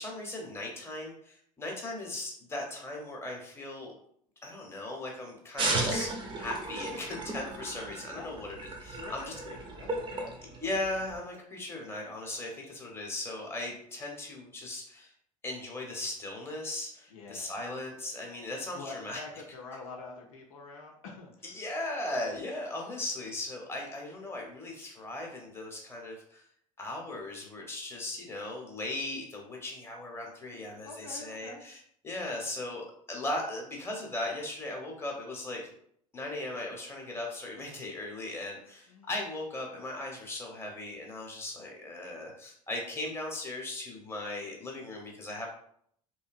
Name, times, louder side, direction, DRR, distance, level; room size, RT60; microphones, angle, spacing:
voice 1, 0.0-3.9 4.4-9.3 10.6-15.1 15.4-19.2 21.4-26.4 26.8-35.7 36.1-45.5, left 2 dB, 15° left, 0 dB, 0.8 m, -38 dB
sound 1, 5.6-11.2, right 2 dB, 25° right, 0.6 m, -35 dB
voice 2, 8.9-10.6 17.1-17.6 18.7-21.6 30.4-31.6 38.9-39.1, left 3 dB, 70° left, 0 dB, 0.6 m, -46 dB
2.7 x 2.2 x 2.4 m, 0.64 s
figure-of-eight pair, 70°, 18 cm